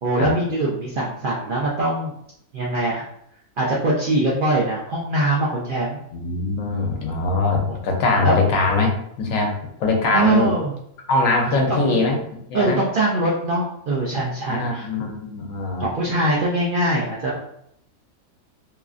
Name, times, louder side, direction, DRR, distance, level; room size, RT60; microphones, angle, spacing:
voice 1, 0.0-2.1 2.5-3.1 3.6-6.0 7.6-7.8 8.2-8.4 10.1-10.7 11.5-12.0 12.5-14.9 15.8-17.4, right 2 dB, 80° right, -5 dB, 0.4 m, -22 dB
voice 2, 6.1-9.5 9.8-10.5 11.1-12.2 12.5-12.8 14.5-15.9, left 3 dB, 70° left, 1 dB, 1.0 m, -22 dB
2.9 x 2.4 x 2.4 m, 0.72 s
omnidirectional pair, 1.5 m